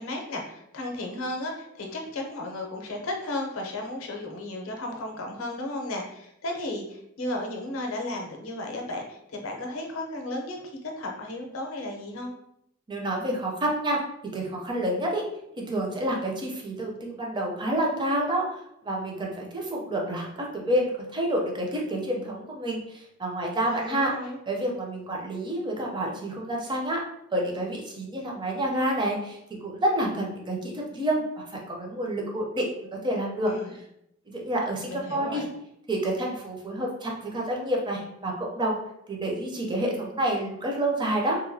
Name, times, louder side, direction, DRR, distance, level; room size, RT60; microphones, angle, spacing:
voice 1, 0.0-12.3 23.7-24.4 33.5-33.7 34.9-35.5, left 1 dB, 70° left, 1 dB, 0.6 m, -34 dB
voice 2, 12.9-14.0 14.3-15.2 15.6-24.1 24.5-27.0 27.3-32.7 33.0-33.5 34.3-35.4 35.9-38.8 39.1-41.4, right 1 dB, 20° right, -1 dB, 0.5 m, -28 dB
2.8 x 2.2 x 2.6 m, 0.78 s
head